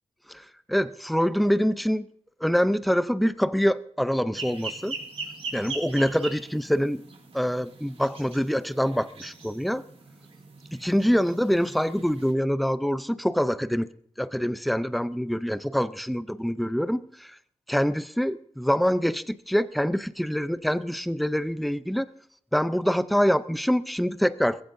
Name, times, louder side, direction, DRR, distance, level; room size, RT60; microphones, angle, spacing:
voice 1, 0.3-2.0 2.4-5.0 5.5-7.0 7.3-9.8 10.7-13.9 14.2-17.4 17.7-22.1 22.5-24.6, equal, ahead, 0.5 m, -25 dB
sound 1, 4.3-12.3, right 3 dB, 65° right, 3.3 m, -41 dB
20.0 x 15.0 x 2.7 m
wide cardioid pair, 115°, 11 cm